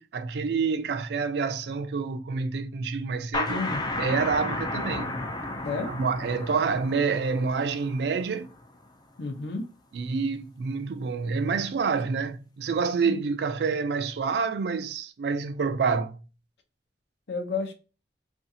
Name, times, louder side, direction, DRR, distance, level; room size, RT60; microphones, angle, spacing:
voice 1, 0.0-3.6 4.0-5.2 5.9-8.5 9.9-16.2, right 5 dB, 65° right, 0.3 m, -28 dB
sound 1, 3.3-8.8, left 2 dB, 25° left, 0.3 m, -33 dB
voice 2, 3.5-3.8 5.6-5.9 9.2-9.6 13.1-13.2 17.3-17.7, left 4 dB, 70° left, 0.6 m, -31 dB
2.5 x 2.4 x 2.7 m
head